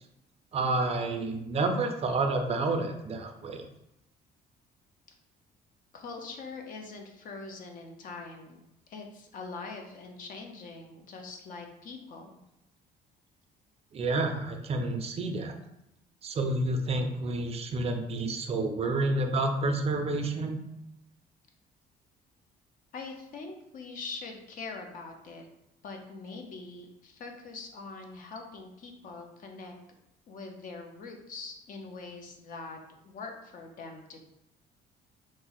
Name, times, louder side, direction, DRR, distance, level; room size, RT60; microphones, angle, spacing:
voice 1, 0.5-3.6 13.9-15.5 16.2-20.6, right 2 dB, 35° right, 5 dB, 0.4 m, -29 dB
voice 2, 5.9-8.6 8.9-12.4 22.9-25.4 25.8-29.7 30.3-32.8 33.0-34.2, left 4 dB, 55° left, 3 dB, 0.6 m, -43 dB
2.6 x 2.0 x 3.8 m, 0.85 s
cardioid pair, 110°, 17 cm